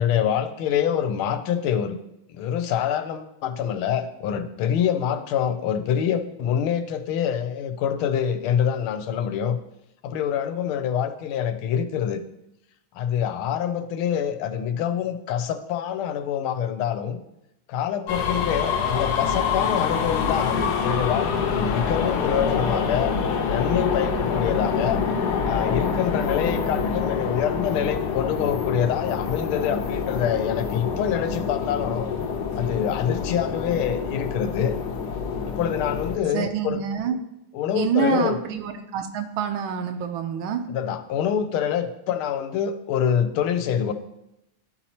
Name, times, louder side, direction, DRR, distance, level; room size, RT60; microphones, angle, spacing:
voice 1, 0.0-2.0 2.3-9.6 10.0-12.2 13.0-17.2 17.7-23.1 23.5-25.0 25.4-32.1 32.6-34.7 35.5-36.8 37.5-38.4 40.7-43.9, left 9 dB, 85° left, 10 dB, 1.5 m, -25 dB
sound 1, 18.1-36.2, left 6 dB, 65° left, 1.1 m, -26 dB
voice 2, 36.3-37.2 37.7-40.6, right 7 dB, 75° right, 7 dB, 1.5 m, -26 dB
12.0 x 4.2 x 2.8 m, 0.86 s
omnidirectional pair, 2.3 m